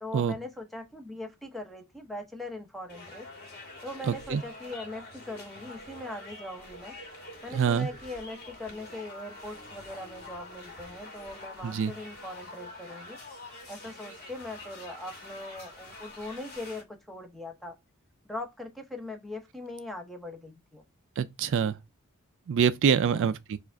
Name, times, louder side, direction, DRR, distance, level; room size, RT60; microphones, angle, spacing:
voice 1, 0.0-3.3 3.8-6.9 7.4-13.2 13.7-17.7 18.3-20.8 21.6-21.7 23.1-23.3, left 1 dB, ahead, 0.7 m, -41 dB
sound 1, 2.9-16.8, left 2 dB, 45° left, 1.4 m, -46 dB
voice 2, 4.1-4.4 7.5-7.9 11.6-11.9 21.2-21.8 22.5-23.6, right 7 dB, 60° right, 0.3 m, -25 dB
4.7 x 2.5 x 4.5 m
head